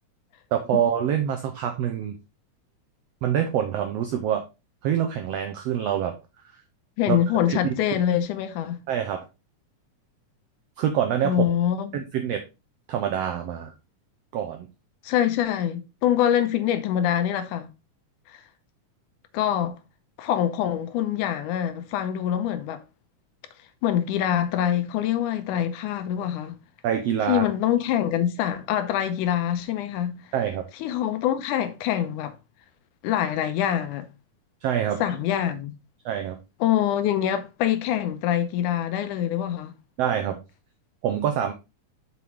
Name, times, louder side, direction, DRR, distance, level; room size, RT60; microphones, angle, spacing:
voice 1, 0.5-2.2 3.2-4.4 4.8-6.1 7.1-7.2 7.5-7.7 8.9-9.2 10.8-11.3 11.9-12.4 12.9-13.7 14.3-14.7 26.8-27.4 30.3-30.6 34.6-35.0 36.0-36.4 40.0-40.4 41.0-41.5, right 9 dB, 90° right, 1.4 m, -25 dB
voice 2, 7.0-8.8 11.2-12.0 15.0-17.7 18.3-18.4 19.3-19.8 20.2-22.8 23.8-26.6 27.3-30.1 30.8-32.4 33.0-34.1 35.0-35.7 36.6-39.7, left 10 dB, 80° left, 2.2 m, -25 dB
6.2 x 5.9 x 3.5 m
omnidirectional pair, 3.7 m